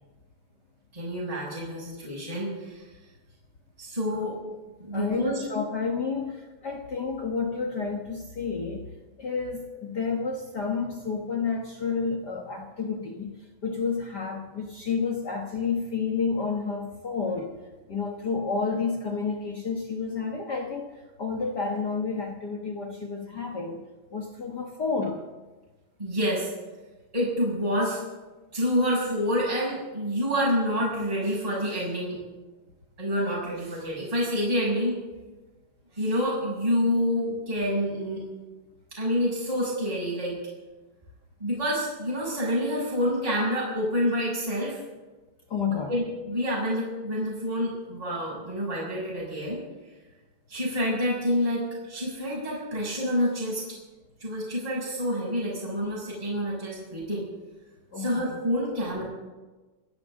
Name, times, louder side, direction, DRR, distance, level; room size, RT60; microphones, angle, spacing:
voice 1, 0.9-2.8 3.8-4.3 4.8-5.4 26.0-26.5 27.1-28.0 28.5-32.2 33.0-35.0 35.9-38.2 39.0-40.3 41.4-44.8 45.9-49.6 50.5-53.6 54.2-57.2 58.0-59.0, equal, 10° right, -7 dB, 6.7 m, -28 dB
voice 2, 4.9-8.8 9.2-13.3 13.6-17.6 17.9-20.9 21.2-23.8 24.1-25.2 45.5-45.9 57.9-58.4, left 5 dB, 65° left, 1 dB, 1.0 m, -30 dB
28.5 x 13.0 x 3.8 m, 1.2 s
omnidirectional pair, 3.8 m